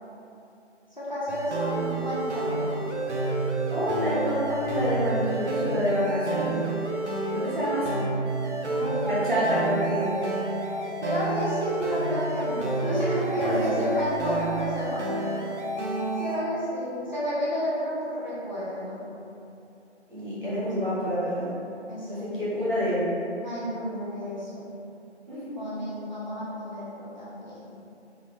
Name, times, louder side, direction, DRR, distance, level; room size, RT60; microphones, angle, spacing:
voice 1, 0.9-2.8 8.7-9.1 11.0-15.4 16.2-19.0 20.4-20.9 21.9-22.4 23.4-24.7 25.5-27.7, equal, 40° left, -10 dB, 0.7 m, -31 dB
sound 1, 1.3-16.4, right 2 dB, 70° right, 0.7 m, -29 dB
voice 2, 3.7-6.6 7.3-8.0 9.0-10.2 13.4-14.1 20.1-21.5 22.1-23.1 25.3-25.8, equal, 45° right, -10 dB, 1.4 m, -28 dB
3.7 x 2.6 x 3.2 m, 2.7 s
figure-of-eight pair, 170°, 36 cm